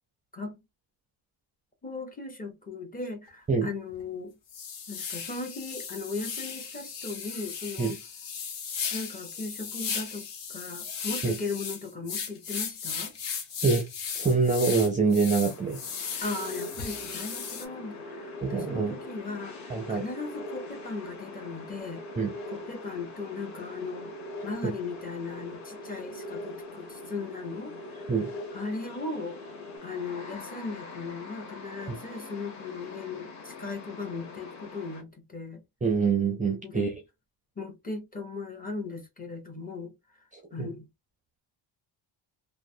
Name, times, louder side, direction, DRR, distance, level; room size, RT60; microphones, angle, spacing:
voice 1, 1.8-4.4 4.9-8.0 8.9-13.2 16.2-22.0 22.5-24.1 24.4-28.1 28.5-29.4 29.8-35.6 36.6-37.0 37.6-39.9 40.5-40.9, left 3 dB, 20° left, 0.8 m, -37 dB
sound 1, 3.3-3.4 3.9-4.0 4.5-17.6, left 6 dB, 65° left, 1.1 m, -36 dB
voice 2, 14.1-15.8 18.4-19.0 19.7-20.0 22.2-22.3 28.1-28.3 31.9-32.0 35.8-36.9 40.6-40.7, right 4 dB, 20° right, 0.4 m, -25 dB
sound 2, 15.4-35.0, left 4 dB, 35° left, 1.2 m, -45 dB
sound 3, 16.2-29.8, equal, 90° left, 0.8 m, -43 dB
3.0 x 2.1 x 2.6 m
cardioid pair, 130°, 46 cm